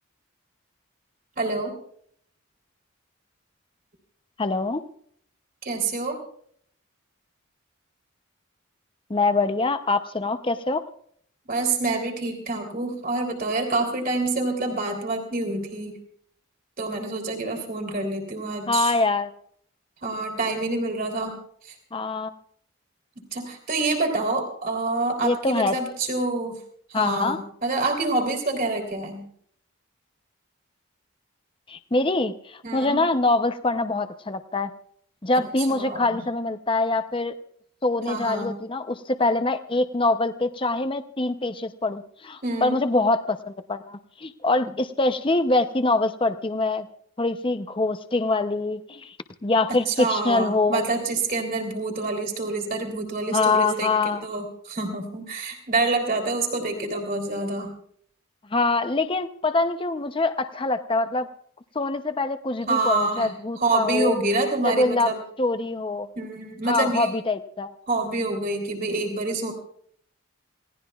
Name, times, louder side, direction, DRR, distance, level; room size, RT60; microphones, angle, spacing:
voice 1, 1.4-1.7 5.6-6.2 11.5-16.0 16.8-18.9 20.0-21.4 21.6-21.7 23.3-26.6 26.9-29.3 32.6-33.0 35.7-36.2 38.1-38.5 42.4-42.8 49.9-57.7 62.7-63.3 63.6-65.2 66.1-67.1 67.9-69.5, right 3 dB, 45° right, 2 dB, 3.3 m, -27 dB
voice 2, 4.4-4.8 9.1-10.8 18.7-19.3 21.9-22.3 25.2-25.7 26.9-27.4 31.7-34.7 35.2-37.3 37.8-46.9 47.2-49.2 49.4-50.8 53.3-54.2 58.5-61.3 61.7-64.1 64.6-65.1 65.4-66.1 66.7-67.7, left 2 dB, 25° left, 9 dB, 0.6 m, -24 dB
27.5 x 18.0 x 2.4 m, 0.64 s
head